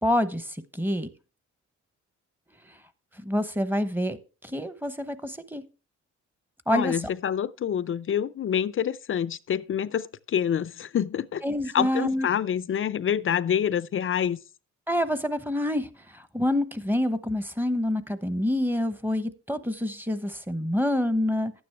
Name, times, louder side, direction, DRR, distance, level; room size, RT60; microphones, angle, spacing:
voice 1, 0.0-1.1 3.2-5.6 6.7-7.0 11.4-12.3 14.9-21.5, left 1 dB, 5° right, 1.0 m, -27 dB
voice 2, 6.7-11.4 11.7-14.4, left 9 dB, 45° left, 0.5 m, -27 dB
11.5 x 9.5 x 3.4 m
cardioid pair, 90°, 30 cm